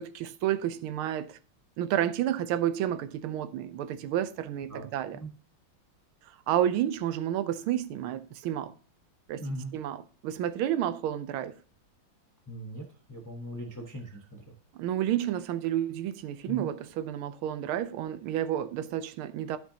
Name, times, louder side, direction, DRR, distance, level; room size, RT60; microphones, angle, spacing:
voice 1, 0.0-1.4 1.8-5.2 6.5-8.7 9.3-9.5 9.7-11.6 14.7-19.6, right 11 dB, 85° right, 1.5 m, -30 dB
voice 2, 9.4-9.7 12.5-14.4 16.5-16.7, right 1 dB, 25° left, 0.4 m, -39 dB
13.0 x 5.5 x 2.8 m
omnidirectional pair, 2.2 m